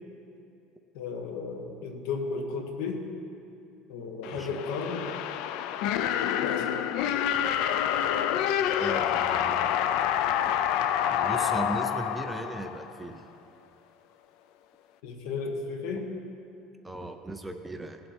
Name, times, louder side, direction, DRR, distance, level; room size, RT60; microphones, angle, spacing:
voice 1, 0.9-3.1 3.9-5.1 6.1-6.9 15.0-16.2, left 4 dB, 75° left, 3 dB, 1.4 m, -34 dB
sound 1, 4.2-13.1, left 10 dB, 60° left, 0.5 m, -27 dB
voice 2, 4.3-4.6 8.8-9.7 11.1-13.2 16.8-18.0, right 2 dB, 5° right, 6 dB, 0.4 m, -37 dB
17.5 x 7.8 x 4.5 m, 2.7 s
cardioid pair, 175°, 0 cm